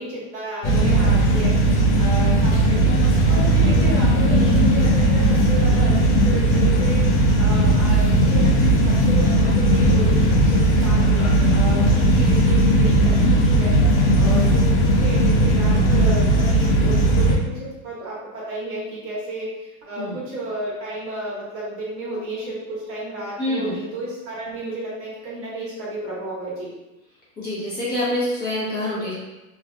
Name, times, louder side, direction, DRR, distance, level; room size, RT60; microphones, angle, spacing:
voice 1, 0.0-2.9 3.3-7.0 7.4-13.7 14.2-26.7, right 1 dB, 30° right, -7 dB, 0.9 m, -32 dB
sound 1, 0.6-17.4, right 1 dB, 40° left, 0.6 m, -17 dB
voice 2, 23.4-23.8 27.4-29.1, left 1 dB, 20° left, -8 dB, 0.9 m, -26 dB
2.5 x 2.3 x 2.4 m, 1.0 s
hypercardioid pair, 120°, 42 cm